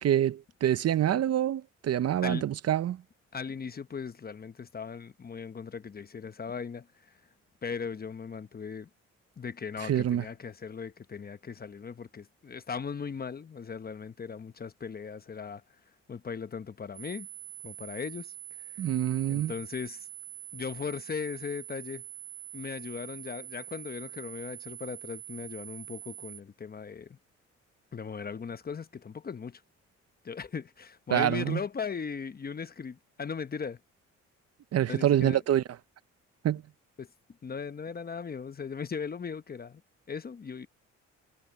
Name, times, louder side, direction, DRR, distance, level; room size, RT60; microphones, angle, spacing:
voice 1, 0.0-3.0 9.8-10.2 18.8-19.5 31.1-31.6 34.7-35.6 36.4-36.6, right 11 dB, 55° right, 0.7 m, -26 dB
voice 2, 3.3-6.9 7.6-8.9 9.4-15.6 16.1-17.3 17.6-18.3 19.3-20.1 20.5-22.0 22.5-27.2 27.9-29.6 30.2-33.8 34.9-35.4 37.0-37.1 37.4-39.8 40.1-40.7, left 6 dB, 30° left, 1.0 m, -38 dB
sound 1, 16.9-26.4, right 11 dB, 20° right, 1.2 m, -45 dB
cardioid pair, 90°, 30 cm